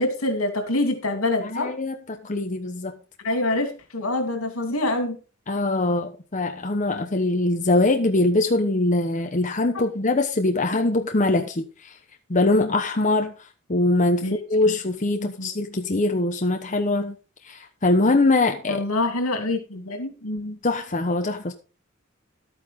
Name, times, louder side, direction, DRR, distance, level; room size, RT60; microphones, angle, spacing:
voice 1, 0.0-1.7 3.2-5.2 9.7-9.8 14.2-14.4 15.2-15.5 18.7-20.6, left 2 dB, 85° left, 2.9 m, -26 dB
voice 2, 1.4-2.9 5.5-11.9 12.3-13.3 13.7-17.2 17.4-18.8 20.6-21.5, left 2 dB, 35° left, 1.0 m, -22 dB
12.0 x 9.2 x 3.7 m
head